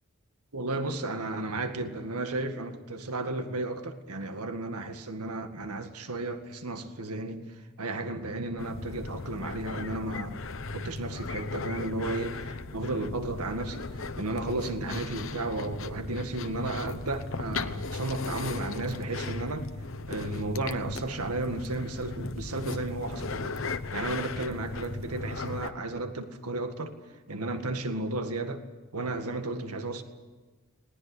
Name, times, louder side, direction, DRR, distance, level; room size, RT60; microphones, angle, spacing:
voice 1, 0.5-10.4 10.7-13.9 14.2-19.7 20.1-27.0 27.3-28.6 28.9-30.0, right 2 dB, 90° right, 7 dB, 2.0 m, -33 dB
sound 1, 8.6-25.7, left 3 dB, 60° left, 1.0 m, -37 dB
20.5 x 19.0 x 10.0 m, 1.3 s
head